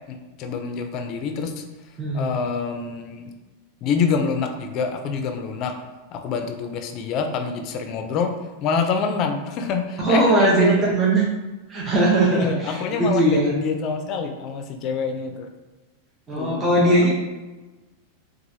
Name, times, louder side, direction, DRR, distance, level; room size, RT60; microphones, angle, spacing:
voice 1, 0.1-1.6 2.1-3.3 3.8-5.8 6.1-8.3 8.6-10.9 12.3-15.5 16.3-17.1, left 5 dB, 45° left, 5 dB, 0.4 m, -26 dB
voice 2, 2.0-2.3 10.0-11.2 11.7-13.5 16.3-17.1, right 2 dB, 25° right, -6 dB, 0.7 m, -19 dB
3.0 x 2.3 x 2.6 m, 1.2 s
hypercardioid pair, 125°, 0 cm